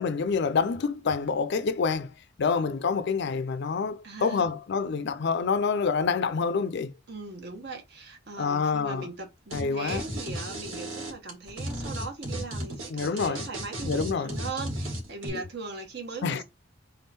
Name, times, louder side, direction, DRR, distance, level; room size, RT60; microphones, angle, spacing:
voice 1, 0.0-2.1 2.4-6.9 8.4-9.1 9.5-10.0 12.9-13.5 13.8-14.3 15.3-15.4 16.2-16.4, left 5 dB, 60° left, 0.4 m, -27 dB
voice 2, 4.0-4.5 7.1-16.4, right 3 dB, 55° right, 1.2 m, -39 dB
sound 1, 9.5-9.6 9.9-15.3, right 1 dB, 90° right, 2.1 m, -34 dB
3.6 x 3.4 x 4.2 m
head